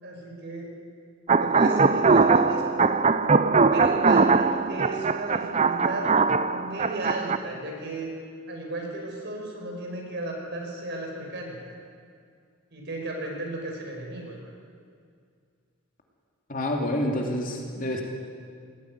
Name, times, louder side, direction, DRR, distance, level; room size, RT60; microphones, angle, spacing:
voice 1, 0.0-0.7 1.4-3.0 3.7-6.1 6.4-8.1 8.5-11.7 12.7-14.5, right 1 dB, 50° right, 0 dB, 5.2 m, -35 dB
sound 1, 1.3-7.4, right 4 dB, 30° right, 0.6 m, -21 dB
voice 2, 16.5-18.0, left 1 dB, 40° left, 1 dB, 2.8 m, -28 dB
19.5 x 15.0 x 9.7 m, 2.2 s
head